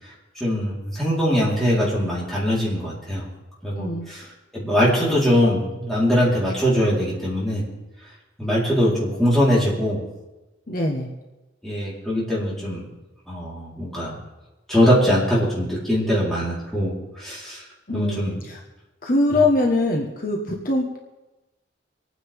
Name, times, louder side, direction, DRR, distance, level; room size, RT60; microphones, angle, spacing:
voice 1, 0.4-3.3 3.6-4.2 4.5-7.6 8.4-10.0 11.6-12.8 13.3-14.2 14.7-17.6 17.9-18.4, equal, ahead, -8 dB, 4.3 m, -22 dB
voice 2, 10.7-11.1 17.9-18.6 19.0-21.0, left 2 dB, 50° left, 0 dB, 1.5 m, -23 dB
25.5 x 9.3 x 3.7 m, 1.1 s
head